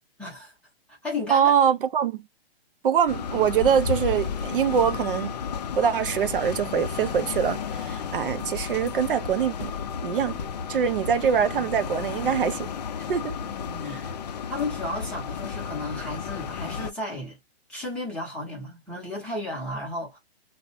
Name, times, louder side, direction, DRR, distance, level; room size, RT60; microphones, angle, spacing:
voice 1, 0.2-0.5 0.9-1.5 13.4-14.1 14.5-17.4 17.7-20.2, left 2 dB, 5° left, 0.7 m, -34 dB
voice 2, 1.3-2.2 2.8-5.3 5.8-9.7 10.0-10.4 10.7-12.7 13.1-13.3, right 8 dB, 60° right, 0.5 m, -23 dB
sound 1, 3.1-16.9, left 6 dB, 45° left, 0.4 m, -33 dB
2.8 x 2.1 x 2.6 m
hypercardioid pair, 155°, 31 cm